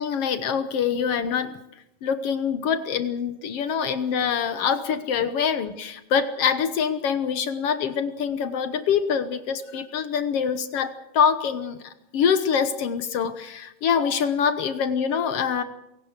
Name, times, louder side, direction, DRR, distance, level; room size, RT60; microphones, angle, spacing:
voice 1, 0.0-1.6 2.0-15.6, left 7 dB, 70° left, 10 dB, 1.5 m, -25 dB
27.0 x 17.0 x 6.6 m, 0.84 s
omnidirectional pair, 4.0 m